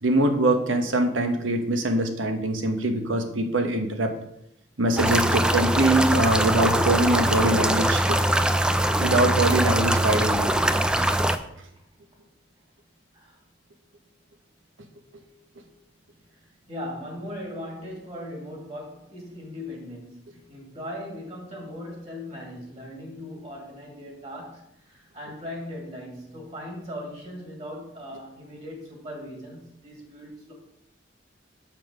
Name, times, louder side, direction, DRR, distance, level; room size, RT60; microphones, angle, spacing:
voice 1, 0.0-4.1 4.8-8.2 9.0-10.5, right 2 dB, 90° right, 5 dB, 1.1 m, -23 dB
sound 1, 5.0-11.4, right 1 dB, 5° right, 0.3 m, -22 dB
voice 2, 16.3-30.5, left 1 dB, 35° right, -1 dB, 2.3 m, -39 dB
7.2 x 5.9 x 5.0 m, 0.78 s
head